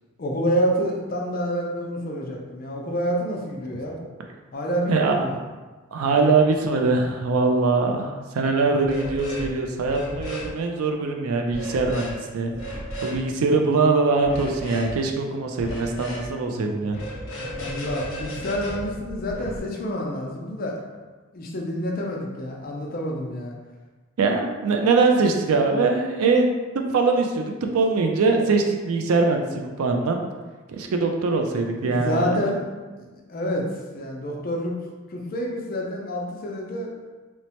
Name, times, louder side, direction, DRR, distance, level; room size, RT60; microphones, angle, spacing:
voice 1, 0.2-4.0 4.5-5.3 17.3-20.8 21.3-23.5 31.8-32.7 33.3-33.7 33.9-34.7 35.1-36.9, equal, 40° left, -1 dB, 0.4 m, -28 dB
voice 2, 4.9-5.3 5.9-12.5 13.0-17.0 24.2-30.2 30.7-32.4, right 3 dB, 85° right, 3 dB, 0.4 m, -22 dB
sound 1, 8.8-9.5 9.8-10.5 11.5-12.1 12.5-13.2 14.2-14.9 15.6-16.3 16.9-19.6, equal, 65° left, 0.8 m, -34 dB
3.0 x 2.1 x 2.8 m, 1.3 s
head